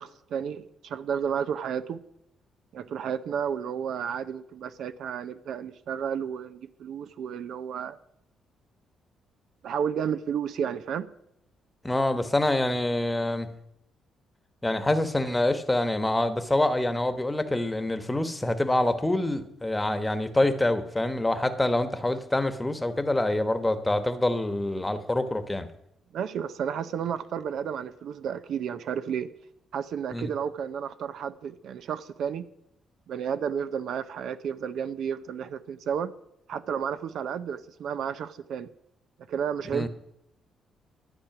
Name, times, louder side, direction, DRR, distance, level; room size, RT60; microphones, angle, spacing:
voice 1, 0.0-2.0 2.7-8.0 9.6-11.1 26.1-29.3 29.7-32.4 33.1-36.1 36.5-38.7 39.3-39.9, right 8 dB, 70° right, 0.6 m, -32 dB
voice 2, 11.8-13.5 14.6-25.7 30.1-30.3 39.7-39.9, left 1 dB, 10° left, 1.2 m, -26 dB
12.0 x 8.2 x 5.9 m
cardioid pair, 90°, 0 cm